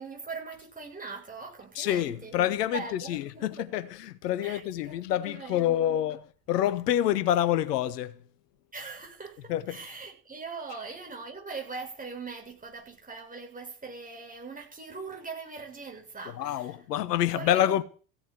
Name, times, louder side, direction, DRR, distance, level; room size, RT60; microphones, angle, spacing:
voice 1, 0.0-3.7 4.4-6.0 8.7-16.9 17.3-17.6, right 4 dB, 15° right, 6.9 m, -41 dB
voice 2, 1.8-2.8 3.1-6.2 6.5-8.1 9.5-9.8 16.4-17.8, left 11 dB, 70° left, 1.2 m, -27 dB
16.0 x 7.8 x 9.1 m
figure-of-eight pair, 75°, 49 cm